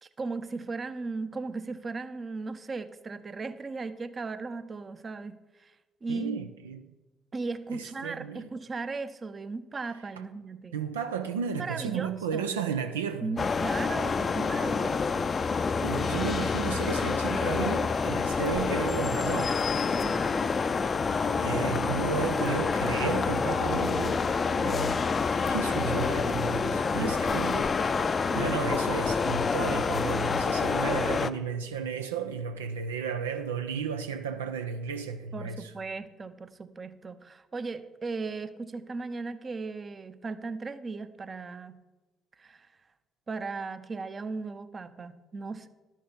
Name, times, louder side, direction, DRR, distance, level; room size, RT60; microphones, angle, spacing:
voice 1, 0.0-5.7 6.0-6.4 7.3-10.8 11.5-12.5 13.2-15.4 20.0-20.5 27.0-27.6 28.3-28.5 35.3-41.7 42.4-42.7 43.3-45.7, right 4 dB, 35° right, 0.7 m, -37 dB
voice 2, 6.1-6.8 7.7-8.5 10.7-13.3 15.8-19.5 21.3-25.0 25.5-28.0 28.3-35.7, right 6 dB, 85° right, 0.4 m, -33 dB
sound 1, 13.4-31.3, left 5 dB, 40° left, 0.5 m, -27 dB
11.5 x 6.5 x 5.3 m
hypercardioid pair, 45°, 0 cm